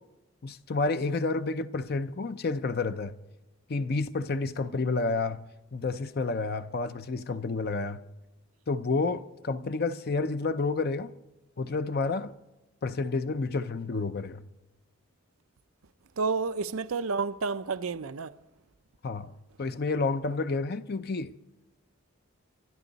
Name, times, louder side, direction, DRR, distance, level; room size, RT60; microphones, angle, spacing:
voice 1, 0.4-3.1 3.7-5.4 5.7-8.0 8.7-11.1 11.6-12.3 12.8-14.4 19.0-19.3 19.6-21.3, left 3 dB, 50° left, 0.6 m, -30 dB
voice 2, 16.2-18.3, right 4 dB, 90° right, 0.6 m, -30 dB
26.0 x 12.0 x 4.0 m
head